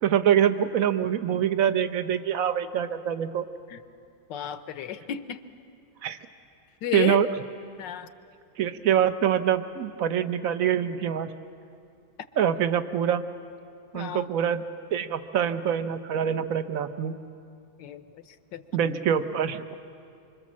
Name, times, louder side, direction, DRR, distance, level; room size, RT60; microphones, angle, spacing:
voice 1, 0.0-3.4 6.0-6.2 6.9-7.3 8.6-11.3 12.4-13.2 13.9-14.6 14.9-17.2 18.7-19.6, right 9 dB, 55° right, 11 dB, 1.0 m, -25 dB
voice 2, 4.3-5.4 6.8-7.3 7.8-8.1 13.9-14.3 17.8-18.6, left 10 dB, 70° left, 12 dB, 1.4 m, -33 dB
25.5 x 25.5 x 7.4 m, 2.4 s
omnidirectional pair, 2.2 m